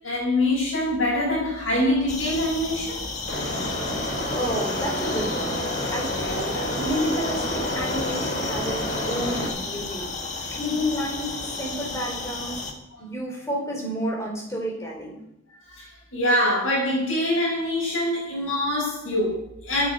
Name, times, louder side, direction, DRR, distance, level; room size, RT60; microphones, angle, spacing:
voice 1, 0.0-3.0 6.5-6.6 10.4-10.5 15.7-19.9, left 1 dB, 90° left, -8 dB, 5.8 m, -24 dB
sound 1, 2.1-12.7, left 3 dB, 35° left, 1.7 m, -33 dB
sound 2, 3.3-9.5, left 1 dB, 55° left, 4.9 m, -29 dB
voice 2, 4.3-5.6 5.9-8.8 9.1-10.1 10.5-12.6 13.0-15.1, equal, 15° left, -1 dB, 4.3 m, -30 dB
15.5 x 9.3 x 5.3 m, 0.80 s
head